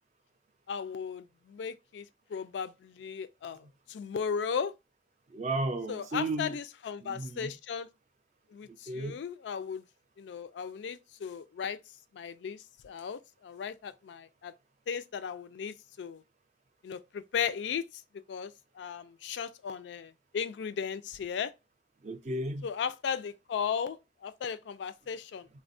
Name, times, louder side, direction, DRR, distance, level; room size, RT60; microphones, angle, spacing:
voice 1, 0.7-4.7 5.9-7.9 8.5-9.8 10.2-11.8 12.1-14.5 14.9-16.2 16.8-18.0 18.3-21.5 22.6-25.5, left 7 dB, 85° left, 0.3 m, -36 dB
voice 2, 5.3-6.6 7.0-7.5 8.9-9.2 22.0-22.7, right 2 dB, 40° right, 0.4 m, -34 dB
3.4 x 2.2 x 2.5 m
head